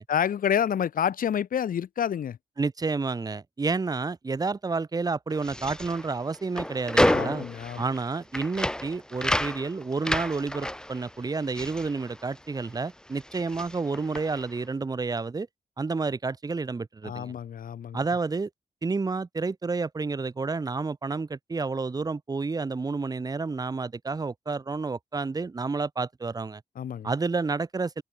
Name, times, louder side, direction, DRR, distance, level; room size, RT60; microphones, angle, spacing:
voice 1, 0.0-2.4 7.1-7.8 17.0-18.0 26.8-27.1, left 9 dB, 80° left, 1.6 m, -28 dB
voice 2, 2.6-7.5 7.8-15.5 15.8-17.3 17.9-18.5 18.8-26.6 27.0-28.0, right 4 dB, 25° right, 1.8 m, -30 dB
sound 1, 5.3-12.8 13.1-14.5, left 1 dB, 5° left, 6.4 m, -30 dB
open air
wide cardioid pair, 165°, 14 cm